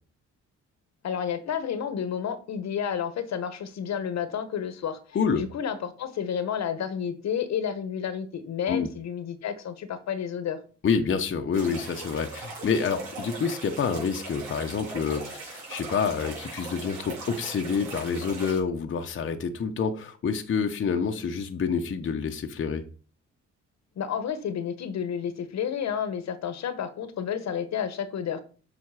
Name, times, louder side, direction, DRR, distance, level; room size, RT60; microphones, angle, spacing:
voice 1, 1.0-5.0 5.3-10.6 24.0-28.4, left 8 dB, 65° left, 1.1 m, -31 dB
voice 2, 5.1-5.5 8.7-8.9 10.8-22.8, left 6 dB, 40° left, 0.9 m, -28 dB
sound 1, 11.5-18.6, right 3 dB, 70° right, 3.6 m, -39 dB
7.4 x 5.1 x 4.8 m
cardioid pair, 90°, 30 cm